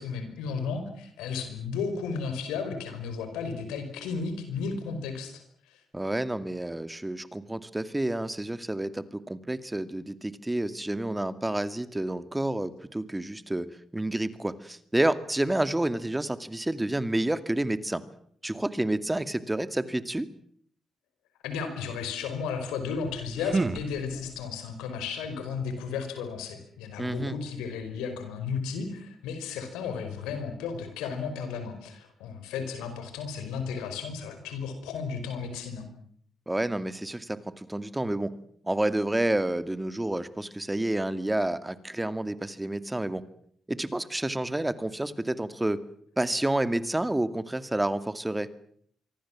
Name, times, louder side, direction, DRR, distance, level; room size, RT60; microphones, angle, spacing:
voice 1, 0.0-5.4 5.7-5.8 21.4-35.9, left 5 dB, 85° left, 8 dB, 5.2 m, -34 dB
voice 2, 5.9-13.7 13.9-18.0 18.4-20.3 27.0-27.4 36.5-38.3 38.6-43.2 43.7-45.8 46.2-48.5, right 1 dB, 15° right, 12 dB, 2.3 m, -29 dB
sound 1, 22.9-24.6, right 3 dB, 35° right, 1.4 m, -32 dB
25.5 x 24.0 x 7.5 m, 0.64 s
hypercardioid pair, 45°, 0 cm